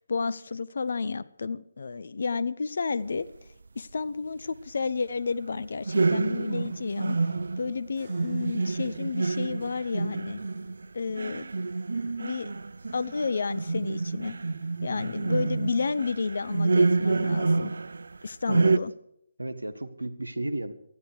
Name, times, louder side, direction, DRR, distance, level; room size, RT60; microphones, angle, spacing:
voice 1, 0.1-3.3 3.8-7.2 7.6-10.4 10.9-11.5 12.0-12.5 12.9-14.4 14.8-17.7 18.2-18.9, left 4 dB, 60° left, 17 dB, 0.8 m, -31 dB
sound 1, 5.9-18.2 18.5-18.8, right 3 dB, 65° right, 0.6 m, -28 dB
sound 2, 8.0-12.0, equal, 5° left, 7.1 m, -61 dB
voice 2, 14.9-15.3 18.5-18.7 19.4-20.7, right 1 dB, 90° right, 12 dB, 1.7 m, -34 dB
18.5 x 13.0 x 4.9 m, 0.77 s
figure-of-eight pair, 145°, 0 cm